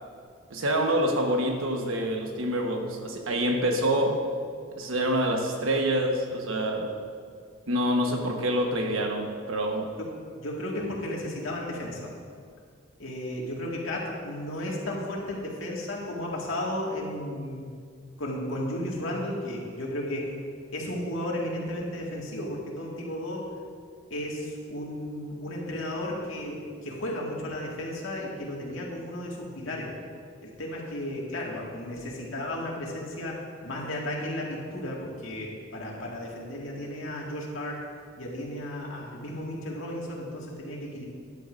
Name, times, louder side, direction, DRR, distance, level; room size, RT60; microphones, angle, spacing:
voice 1, 0.5-4.2 4.8-6.9 7.7-9.9, right 1 dB, 90° right, 2 dB, 1.3 m, -26 dB
voice 2, 10.0-12.1 13.0-17.7 18.2-20.3 20.7-23.5 24.1-29.9 30.4-33.4 33.6-37.8 38.2-41.1, left 1 dB, 80° left, -3 dB, 2.0 m, -34 dB
13.0 x 10.5 x 2.6 m, 2.1 s
head